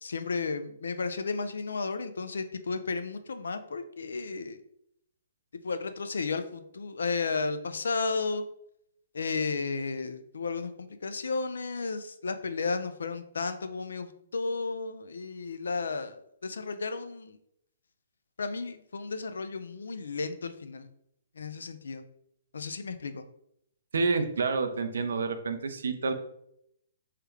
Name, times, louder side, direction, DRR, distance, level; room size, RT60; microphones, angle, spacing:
voice 1, 0.0-4.6 5.6-8.4 9.1-17.4 18.4-20.9 21.4-22.0 22.5-23.2, left 4 dB, 80° left, 9 dB, 0.3 m, -33 dB
voice 2, 23.9-26.1, right 4 dB, 75° right, 7 dB, 0.5 m, -28 dB
3.2 x 2.3 x 3.1 m, 0.74 s
hypercardioid pair, 135°, 0 cm